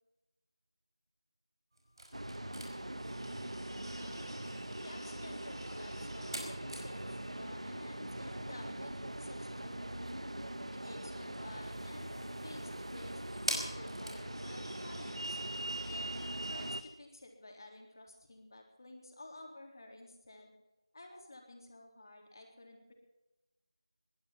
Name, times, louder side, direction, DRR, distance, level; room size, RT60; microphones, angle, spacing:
sound 1, 1.7-16.9, right 1 dB, 55° right, 5.1 m, -48 dB
sound 2, 2.1-16.8, right 1 dB, 85° right, 1.5 m, -42 dB
voice 1, 4.0-4.3 4.8-9.8 10.7-15.4 15.9-20.5 20.9-22.9, left 2 dB, 40° left, 2 dB, 3.6 m, -53 dB
20.5 x 11.0 x 5.7 m, 1.0 s
figure-of-eight pair, 170°, 3 cm